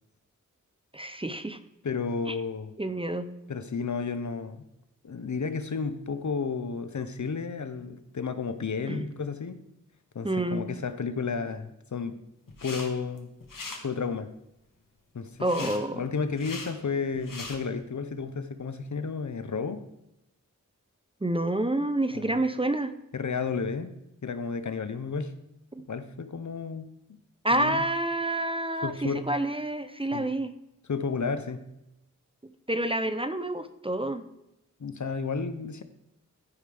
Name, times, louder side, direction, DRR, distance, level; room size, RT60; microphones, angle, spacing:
voice 1, 0.9-1.6 2.3-2.4 2.8-3.3 8.9-9.1 10.2-10.6 15.4-16.0 21.2-22.9 25.7-25.8 27.4-30.5 32.7-34.2, right 1 dB, 15° right, 10 dB, 0.5 m, -28 dB
voice 2, 1.8-2.7 3.5-4.6 5.0-9.6 10.1-12.2 12.6-13.3 13.8-14.3 15.1-19.8 22.1-22.4 23.1-23.9 24.2-25.3 25.9-27.2 27.5-27.8 28.8-29.3 30.1-30.2 30.9-31.6 34.8-35.8, left 5 dB, 65° left, 10 dB, 0.7 m, -32 dB
sound 1, 12.5-12.9 13.2-13.8 15.5-15.8 16.3-16.7 17.1-17.6, left 3 dB, 90° left, 1.3 m, -39 dB
14.5 x 5.2 x 3.3 m, 0.85 s
wide cardioid pair, 65°, 32 cm